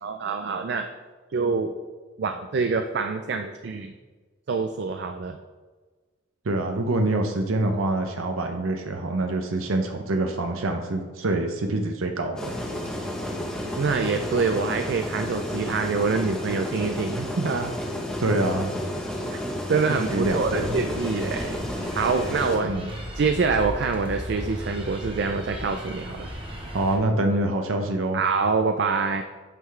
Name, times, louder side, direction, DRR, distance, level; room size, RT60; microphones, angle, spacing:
voice 1, 0.0-0.8 1.3-1.7 2.2-3.9 4.5-5.4 13.8-17.7 19.3-19.4 19.7-22.7 23.2-26.3 28.1-29.2, right 4 dB, 55° right, 7 dB, 0.4 m, -25 dB
voice 2, 6.4-12.5 18.2-18.7 19.9-20.8 22.6-22.9 26.7-28.2, right 2 dB, 90° right, 5 dB, 0.7 m, -25 dB
sound 1, 12.4-22.6, left 1 dB, 5° left, 0.9 m, -31 dB
sound 2, 20.2-27.0, equal, 25° right, 1.2 m, -36 dB
8.9 x 5.7 x 3.2 m, 1.3 s
head